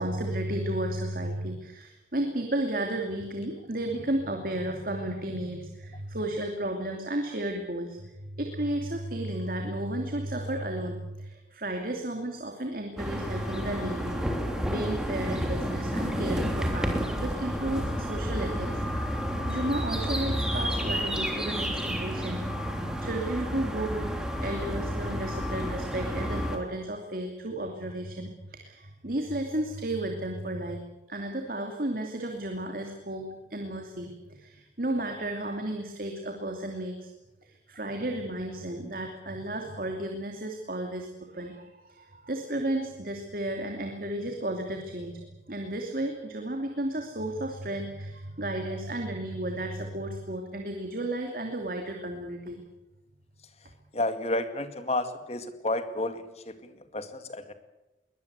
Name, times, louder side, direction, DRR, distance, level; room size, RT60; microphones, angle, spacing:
voice 1, 0.0-14.2 14.7-30.8 31.1-37.1 37.4-45.2 45.5-52.6, right 1 dB, 50° right, 3 dB, 2.8 m, -33 dB
sound 1, 13.0-26.6, equal, 5° right, 3.3 m, -31 dB
voice 2, 53.6-57.5, left 2 dB, 35° left, 9 dB, 2.1 m, -32 dB
22.5 x 20.0 x 8.2 m, 0.99 s
head